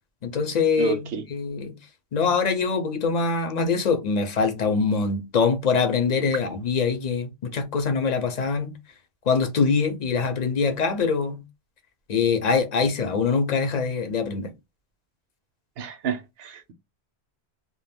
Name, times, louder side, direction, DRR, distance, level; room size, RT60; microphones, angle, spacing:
voice 1, 0.2-1.7 2.1-8.7 9.3-11.4 12.1-14.5, left 5 dB, 45° left, 0.7 m, -24 dB
voice 2, 0.8-1.2 15.8-16.7, right 7 dB, 70° right, 0.8 m, -30 dB
2.4 x 2.2 x 3.4 m
omnidirectional pair, 1.1 m